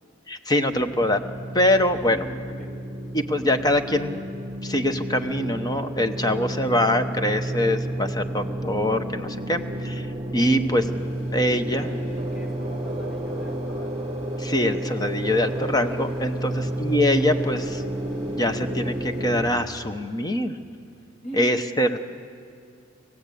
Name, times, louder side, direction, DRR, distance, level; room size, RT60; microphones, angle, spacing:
voice 1, 0.3-1.2 1.5-2.3 3.1-4.3 4.6-10.1 10.3-10.9 11.3-11.9 14.4-17.8 18.4-20.6 21.3-22.0, left 1 dB, 20° left, 8 dB, 0.9 m, -23 dB
sound 1, 0.7-19.5, right 1 dB, 25° right, 1.3 m, -31 dB
voice 2, 2.1-2.7 11.7-14.0 16.4-16.7 21.2-21.5, equal, 40° left, 1 dB, 2.9 m, -40 dB
sound 2, 10.9-19.2, left 3 dB, 85° left, 4.6 m, -51 dB
25.5 x 15.5 x 8.4 m, 2.3 s
head